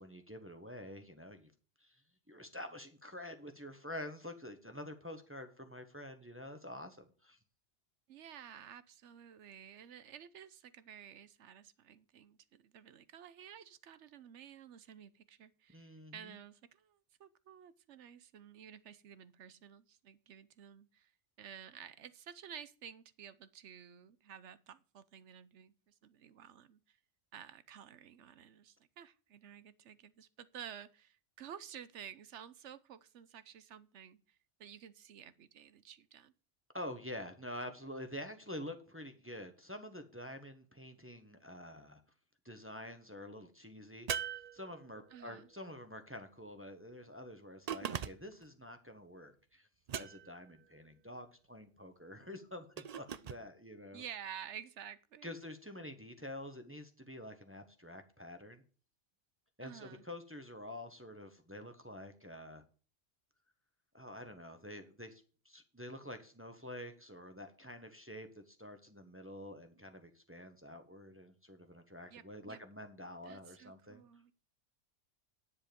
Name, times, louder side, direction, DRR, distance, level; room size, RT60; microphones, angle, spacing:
voice 1, 0.0-1.5 1.8-2.0 2.3-7.4 15.7-16.4 36.7-42.0 42.4-44.3 44.5-49.7 50.0-54.0 55.2-58.6 59.6-62.6 63.9-74.1, left 1 dB, 10° right, 6 dB, 1.1 m, -48 dB
voice 2, 8.1-21.1 21.4-27.0 27.3-36.3 45.1-45.5 53.9-55.3 59.6-60.0 72.1-72.6 73.2-74.3, right 9 dB, 75° right, 15 dB, 1.1 m, -52 dB
sound 1, 44.1-45.2 47.7-48.5 49.9-50.5 52.8-53.4, right 8 dB, 55° right, 0.4 m, -40 dB
10.0 x 7.2 x 5.3 m, 0.38 s
omnidirectional pair, 1.2 m